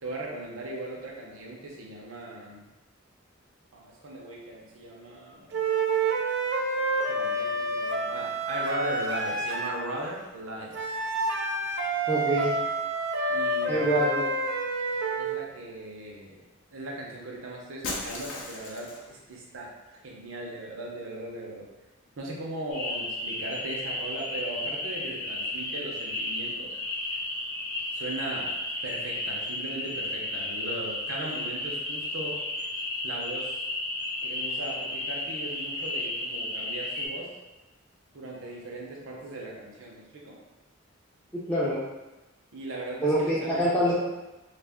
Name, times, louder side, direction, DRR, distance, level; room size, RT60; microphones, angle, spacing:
voice 1, 0.0-2.6 3.7-5.5 7.1-10.8 13.3-14.1 15.2-16.4 16.7-21.7 22.2-26.8 27.9-28.5 28.8-32.3 33.0-33.6 34.2-37.3 38.1-40.4 42.5-43.8, right 2 dB, 85° right, -2 dB, 0.7 m, -38 dB
sound 1, 5.5-9.8 10.7-15.4, right 2 dB, 60° right, 0.4 m, -28 dB
voice 2, 12.1-12.6 13.7-14.2 41.3-41.8 43.0-43.9, equal, 5° left, -9 dB, 0.4 m, -25 dB
Shatter, 17.8-19.2, left 2 dB, 65° left, 0.5 m, -36 dB
sound 2, 22.7-37.1, left 2 dB, 30° left, 0.8 m, -33 dB
2.4 x 2.4 x 3.5 m, 1.1 s
head